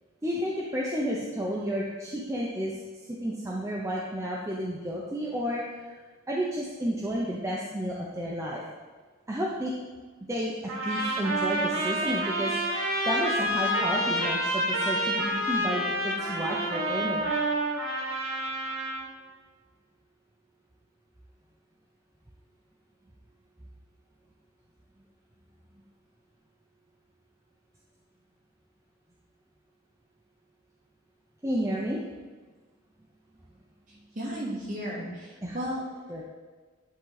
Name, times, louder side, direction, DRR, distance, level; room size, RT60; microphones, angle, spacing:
voice 1, 0.2-2.8 3.1-6.0 6.3-8.6 9.3-9.7 10.3-12.6 13.1-17.3 31.4-32.0 35.4-35.6 36.1-36.2, equal, 15° right, -4 dB, 0.6 m, -31 dB
sound 1, 10.7-19.1, right 1 dB, 80° right, 1.6 m, -28 dB
voice 2, 33.9-35.8, equal, 40° right, -6 dB, 2.3 m, -34 dB
10.0 x 3.8 x 4.0 m, 1.4 s
head